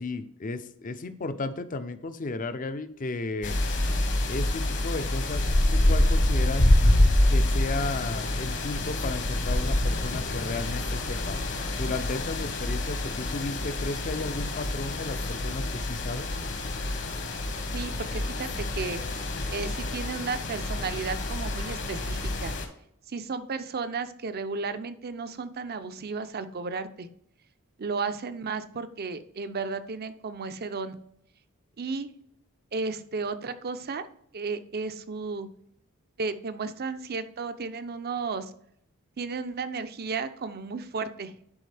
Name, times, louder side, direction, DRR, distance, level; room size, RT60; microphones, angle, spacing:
voice 1, 0.0-3.6 4.3-5.4 5.7-6.7 7.3-11.4 11.8-16.3, left 3 dB, 40° left, 11 dB, 0.6 m, -34 dB
sound 1, 3.4-22.7, left 1 dB, 60° left, 1.4 m, -27 dB
voice 2, 17.7-18.5 18.8-19.0 19.5-22.5 23.1-27.1 27.8-31.0 31.8-32.1 32.7-34.1 34.3-35.5 36.2-38.5 39.2-41.4, right 4 dB, 45° right, 11 dB, 0.6 m, -33 dB
10.5 x 4.2 x 3.4 m, 0.72 s
head